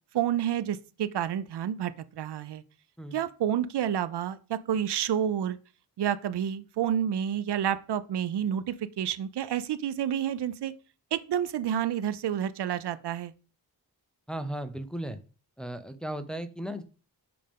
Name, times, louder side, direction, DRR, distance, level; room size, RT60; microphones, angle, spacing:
voice 1, 0.1-2.6 3.1-5.6 6.0-10.7 11.1-13.3, right 10 dB, 80° right, 0.6 m, -29 dB
voice 2, 14.3-15.2 15.6-16.8, right 1 dB, ahead, 0.7 m, -36 dB
7.7 x 5.0 x 3.6 m
wide cardioid pair, 100°, 40 cm